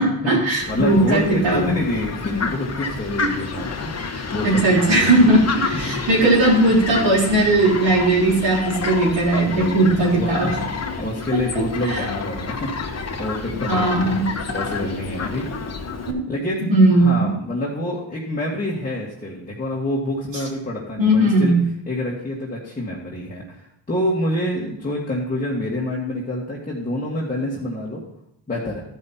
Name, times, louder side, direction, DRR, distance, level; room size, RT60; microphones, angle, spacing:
voice 1, 0.0-1.7 3.2-3.3 4.1-8.6 8.8-10.5 11.9-12.0 13.7-14.2 16.1-16.2 16.6-17.3 21.0-21.6, right 1 dB, 70° right, -7 dB, 3.7 m, -18 dB
Fowl, 0.6-16.1, left 4 dB, 35° left, 1.3 m, -29 dB
voice 2, 0.7-5.3 5.7-5.8 6.1-6.3 9.4-10.6 11.0-13.9 14.5-15.5 16.0-21.5 21.9-28.0 28.5-28.8, left 1 dB, 20° left, -5 dB, 1.9 m, -27 dB
13.0 x 5.4 x 4.3 m, 0.75 s
cardioid pair, 85°, 46 cm